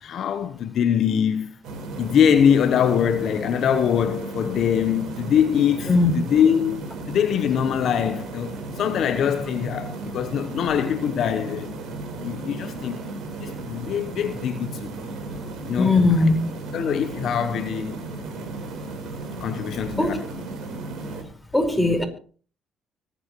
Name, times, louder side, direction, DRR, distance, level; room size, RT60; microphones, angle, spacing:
voice 1, 0.0-1.5 2.0-5.9 6.1-11.8 12.2-13.0 13.4-14.9 15.6-15.9 16.7-18.0 19.4-20.2, left 8 dB, 65° left, 1.0 m, -23 dB
sound 1, 1.6-21.2, right 2 dB, 70° right, 4.1 m, -35 dB
voice 2, 15.7-16.4 20.0-20.2 21.5-22.0, left 3 dB, 5° left, 4.8 m, -18 dB
25.0 x 9.6 x 3.1 m
supercardioid pair, 65°, 0 cm